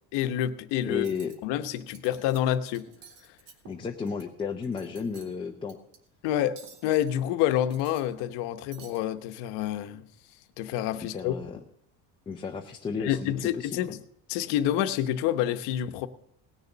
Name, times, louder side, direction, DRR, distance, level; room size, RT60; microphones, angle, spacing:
voice 1, 0.1-1.0 1.4-2.9 6.2-10.1 10.6-11.3 13.0-14.0 14.3-16.1, left 11 dB, 70° left, 1.0 m, -28 dB
voice 2, 0.9-1.3 3.7-5.8 11.1-11.6 12.3-13.8, left 5 dB, 10° left, 0.5 m, -33 dB
Cutlery silverware, 0.9-1.3 1.8-2.4 2.6-4.2 4.6-5.3 5.7-6.0 6.6-7.1 7.5-8.4 8.7-9.0, right 6 dB, 80° right, 2.3 m, -51 dB
18.5 x 6.8 x 6.0 m
cardioid pair, 165°, 43 cm